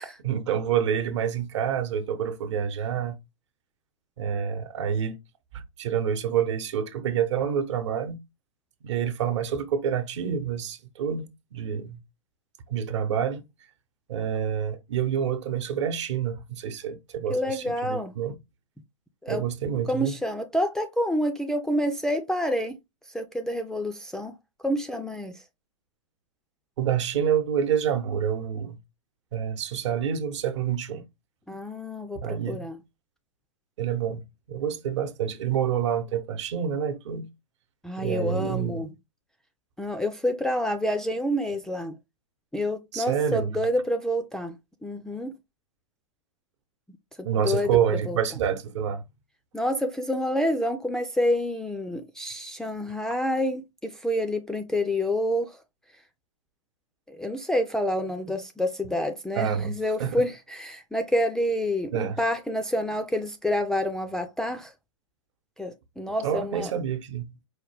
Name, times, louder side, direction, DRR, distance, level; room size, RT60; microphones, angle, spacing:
voice 1, 0.2-3.2 4.2-5.2 5.5-8.2 8.8-12.0 12.7-13.4 14.1-18.4 19.3-20.2 26.8-28.8 29.3-31.0 32.2-32.7 33.8-34.2 34.5-37.3 38.0-38.8 42.9-43.5 47.2-49.0 59.3-59.7 60.0-60.2 61.9-62.2 66.2-67.3, right 8 dB, 60° right, 0.9 m, -27 dB
voice 2, 17.3-18.1 19.2-19.4 19.9-22.8 23.1-24.3 24.6-25.3 31.5-32.2 32.5-32.8 37.8-38.9 39.8-42.0 42.5-44.5 44.8-45.3 47.2-47.8 48.1-48.2 49.5-55.6 57.1-64.7 65.6-66.7, left 1 dB, 5° left, 0.3 m, -28 dB
4.9 x 2.2 x 3.3 m
hypercardioid pair, 120°, 17 cm